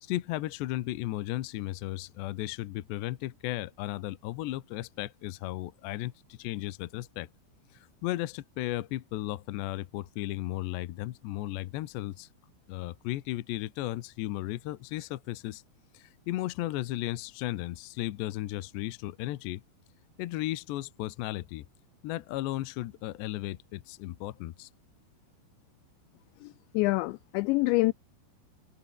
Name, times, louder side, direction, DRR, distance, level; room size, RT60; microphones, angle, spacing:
voice 1, 0.0-7.3 7.7-12.3 12.7-15.6 15.9-19.6 20.2-21.7 22.0-24.7, left 16 dB, 70° left, 3.0 m, -35 dB
voice 2, 26.4-27.9, left 22 dB, 85° left, 2.5 m, -26 dB
omnidirectional pair, 5.7 m